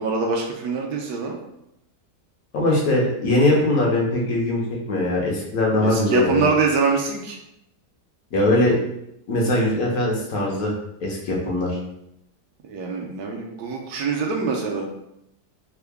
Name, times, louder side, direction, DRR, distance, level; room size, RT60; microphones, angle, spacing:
voice 1, 0.0-1.4 5.8-7.4 12.6-14.9, right 4 dB, 70° right, 1 dB, 1.1 m, -24 dB
voice 2, 2.5-4.6 4.9-6.4 8.3-8.8 9.3-10.7 11.0-11.8, left 1 dB, 60° left, -2 dB, 1.2 m, -21 dB
3.6 x 2.2 x 3.4 m, 0.81 s
omnidirectional pair, 1.8 m